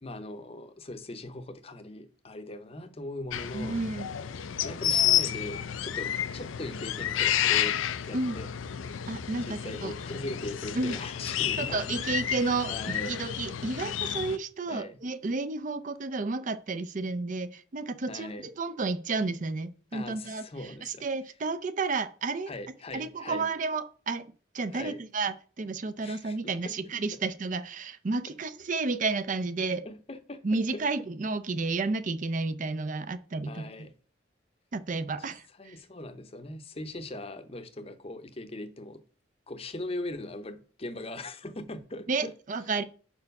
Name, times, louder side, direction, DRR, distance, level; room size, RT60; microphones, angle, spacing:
voice 1, 0.0-3.8 4.6-7.8 8.0-8.5 9.5-12.2 12.7-13.1 14.7-15.0 18.1-18.5 19.9-21.0 22.5-23.5 24.7-25.0 26.0-26.7 29.8-30.4 30.7-30.8 33.5-33.9 35.6-39.0 39.5-42.3, left 2 dB, 30° left, 0.7 m, -40 dB
sound 1, 3.3-14.4, left 10 dB, 85° left, 0.5 m, -30 dB
voice 2, 3.5-4.1 8.1-8.4 9.1-9.9 10.7-11.0 11.6-22.5 22.9-29.9 30.4-33.9 34.7-35.8 42.1-42.8, right 3 dB, 40° right, 0.5 m, -32 dB
5.8 x 4.6 x 5.3 m
head